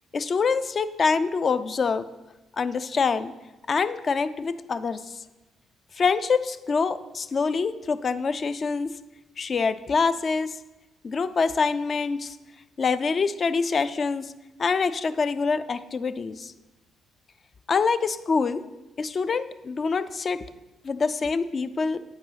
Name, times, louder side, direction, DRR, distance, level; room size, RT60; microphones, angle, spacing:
voice 1, 0.1-2.1 2.6-3.3 3.7-5.2 6.0-8.9 9.4-10.6 11.0-12.4 12.8-14.3 14.6-16.5 17.7-18.6 19.0-20.5 20.8-22.0, left 5 dB, 45° left, 13 dB, 0.4 m, -25 dB
9.5 x 4.8 x 4.0 m, 1.1 s
cardioid pair, 90°, 0 cm